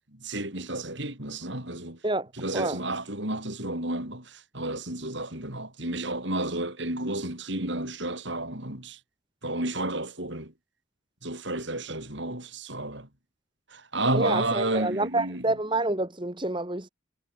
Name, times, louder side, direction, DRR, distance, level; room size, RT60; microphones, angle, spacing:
voice 1, 0.1-2.0 2.3-9.0 9.4-10.5 11.2-13.1 13.7-15.5, right 2 dB, 60° right, 6.5 m, -31 dB
voice 2, 14.1-16.9, right 2 dB, 25° right, 1.6 m, -28 dB
head